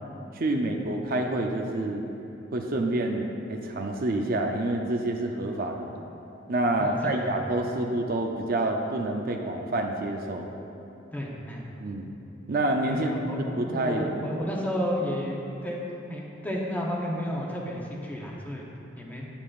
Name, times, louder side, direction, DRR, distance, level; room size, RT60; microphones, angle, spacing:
voice 1, 0.3-2.0 2.5-5.9 6.5-10.5 11.8-12.1 12.5-13.1 13.6-14.1, right 2 dB, 50° right, 2 dB, 0.5 m, -28 dB
voice 2, 6.8-7.7 11.1-11.6 12.9-15.8 16.1-18.7 19.0-19.3, equal, 10° left, -3 dB, 0.9 m, -32 dB
9.2 x 8.7 x 2.5 m, 3.0 s
head